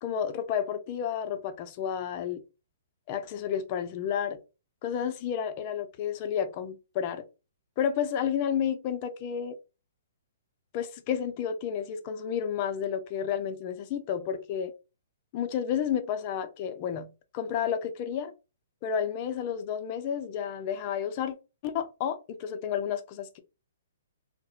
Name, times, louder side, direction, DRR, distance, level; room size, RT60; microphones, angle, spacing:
voice 1, 0.0-2.4 3.1-4.4 4.8-7.2 7.8-9.6 10.7-14.7 15.3-17.1 17.3-18.3 18.8-21.3 21.6-23.4, left 8 dB, 40° left, 0.4 m, -31 dB
2.4 x 2.0 x 2.7 m
hypercardioid pair, 140°, 0 cm